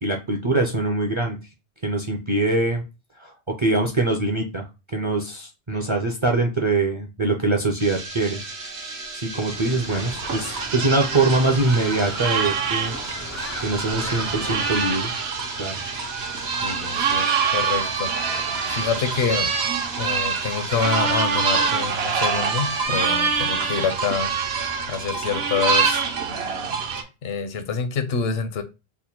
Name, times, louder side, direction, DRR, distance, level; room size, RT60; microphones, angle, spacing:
voice 1, 0.0-1.4 1.8-2.8 3.2-8.4 9.1-13.0 13.6-15.2 15.6-15.8, right 2 dB, 40° right, 0.5 m, -23 dB
sound 1, 7.8-22.9, right 3 dB, 90° right, 1.2 m, -36 dB
Human group actions, 9.5-14.9, left 1 dB, 25° left, 0.4 m, -38 dB
sound 2, 9.9-27.0, right 5 dB, 70° right, 0.9 m, -25 dB
voice 2, 16.6-18.1 18.4-19.5 20.0-24.3 24.9-26.0 27.2-28.6, left 6 dB, 70° left, 0.9 m, -26 dB
3.4 x 2.2 x 4.2 m
omnidirectional pair, 1.1 m